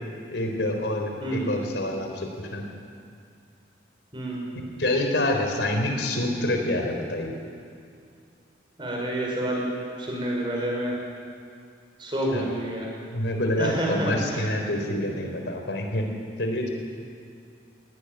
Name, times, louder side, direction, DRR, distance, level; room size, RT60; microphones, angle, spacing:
voice 1, 0.3-2.6 4.8-7.4 12.3-12.5 13.1-16.1 16.4-16.7, left 1 dB, 70° left, 3 dB, 4.1 m, -27 dB
voice 2, 1.2-1.5 4.1-4.5 8.8-9.6 10.0-11.0 12.0-12.9 13.6-14.5, right 1 dB, 25° right, -2 dB, 6.1 m, -28 dB
20.0 x 18.5 x 9.7 m, 2.3 s
head